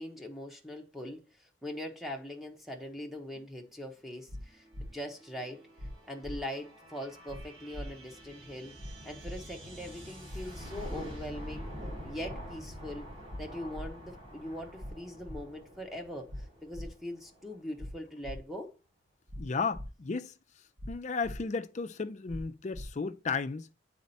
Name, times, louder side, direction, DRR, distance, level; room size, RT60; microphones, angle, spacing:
voice 1, 0.0-5.6 6.1-8.8 9.0-11.7 12.0-13.1 13.4-18.7, left 1 dB, ahead, 1.0 m, -41 dB
sound 1, 4.3-4.4 4.7-4.9 5.8-5.9 6.2-6.4 7.3-7.4 7.7-7.9 8.8-8.9 9.2-9.4 10.3-10.4 10.7-10.9 11.8-11.9 12.2-12.4 13.3-13.4 13.7-13.9 14.8-14.9 15.2-15.4 16.3-16.4 16.7-16.9 17.8-17.9 18.2-18.4 19.3-19.4 19.7-19.9 20.8-20.9 21.2-21.4 22.3-22.4 22.7-22.9, left 1 dB, 60° right, 1.2 m, -41 dB
sound 2, 4.4-17.8, equal, 30° right, 3.9 m, -47 dB
voice 2, 19.4-20.3 20.9-23.7, left 4 dB, 35° left, 0.4 m, -34 dB
8.4 x 4.2 x 4.1 m
head